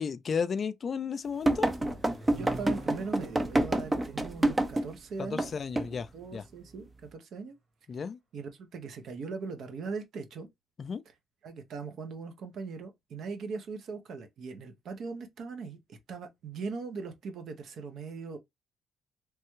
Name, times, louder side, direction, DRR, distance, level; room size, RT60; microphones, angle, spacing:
voice 1, 0.0-1.7 5.2-6.5 7.9-8.2 10.8-11.0, left 6 dB, 45° left, 0.3 m, -33 dB
Accelerating revving vroom, 0.9-6.9, right 2 dB, 45° right, 1.7 m, -49 dB
sound 1, 1.5-4.9 5.4-5.5 5.8-5.9, right 1 dB, 20° right, 0.5 m, -27 dB
voice 2, 2.3-5.5 6.1-7.6 8.3-10.5 11.4-18.4, right 4 dB, 70° right, 0.7 m, -40 dB
3.2 x 2.2 x 3.0 m
cardioid pair, 90°, 0 cm